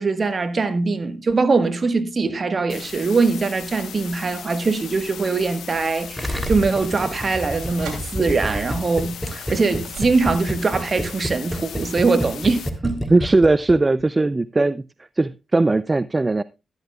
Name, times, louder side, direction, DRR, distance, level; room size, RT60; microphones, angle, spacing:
voice 1, 0.0-13.0, right 4 dB, 50° right, 1.3 m, -22 dB
sound 1, 2.7-12.7, left 8 dB, 80° left, 0.9 m, -38 dB
sound 2, 5.3-10.6, right 6 dB, 80° right, 2.8 m, -44 dB
Gurgling, 6.2-13.7 14.0-14.1, equal, 5° right, 2.9 m, -28 dB
voice 2, 13.1-14.8 15.2-16.4, right 2 dB, 30° right, 0.4 m, -18 dB
12.5 x 12.0 x 2.3 m
supercardioid pair, 45°, 0 cm